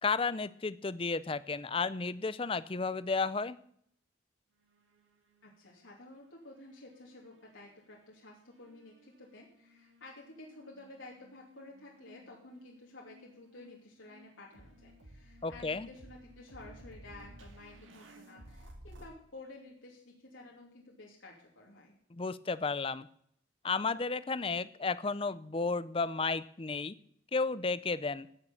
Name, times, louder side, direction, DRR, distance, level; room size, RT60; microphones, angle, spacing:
voice 1, 0.0-3.6 15.4-15.9 22.1-23.1 23.6-27.0 27.3-28.3, left 4 dB, 30° left, 17 dB, 0.5 m, -33 dB
sound 1, 4.6-6.2 6.5-7.9 8.6-19.1, equal, 90° right, 2.4 m, -56 dB
voice 2, 5.4-21.9, left 2 dB, 85° left, -2 dB, 2.8 m, -52 dB
15.5 x 6.7 x 8.5 m, 0.68 s
head